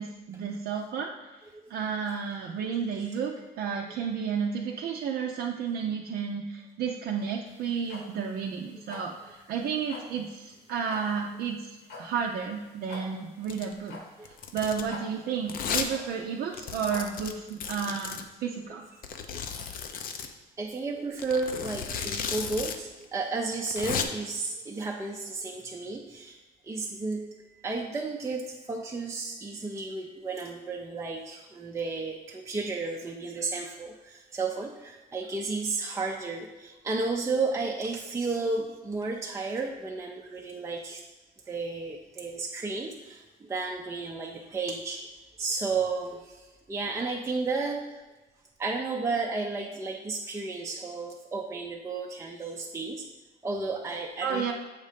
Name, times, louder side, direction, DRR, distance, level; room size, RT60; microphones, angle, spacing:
voice 1, 0.0-18.9 54.2-54.5, right 6 dB, 65° right, -1 dB, 0.5 m, -32 dB
sound 1, 7.5-17.4, left 3 dB, 80° left, 1.3 m, -47 dB
Domestic sounds home sounds, 13.4-13.7 14.2-14.9 15.5-15.9 16.2-16.3 16.5-18.2 19.0-20.3 21.2-22.8 23.0-23.1 23.5-24.0, left 7 dB, 55° left, 0.6 m, -34 dB
voice 2, 20.6-26.4 26.7-27.3 27.6-41.0 41.5-45.0 45.4-46.2 46.7-47.9 48.6-53.0 53.4-54.5, right 3 dB, 15° right, 0 dB, 0.5 m, -32 dB
7.2 x 2.7 x 5.0 m, 1.2 s
cardioid pair, 110°, 17 cm